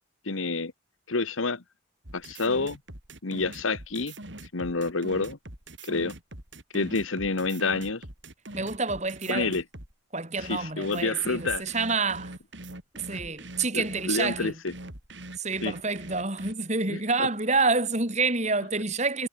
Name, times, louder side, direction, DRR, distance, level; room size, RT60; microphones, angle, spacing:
voice 1, 0.2-0.7 1.1-1.6 2.1-2.8 3.2-4.1 4.5-5.4 5.8-6.1 6.7-8.0 9.3-9.6 10.4-11.6 13.7-14.7 15.6-15.8 16.9-17.3, left 3 dB, 90° left, 1.4 m, -28 dB
sound 1, 2.0-9.9 10.4-16.5, right 1 dB, 65° right, 5.4 m, -42 dB
voice 2, 8.5-9.5 10.1-12.3 12.9-14.5 15.4-19.3, right 3 dB, 35° right, 6.0 m, -28 dB
head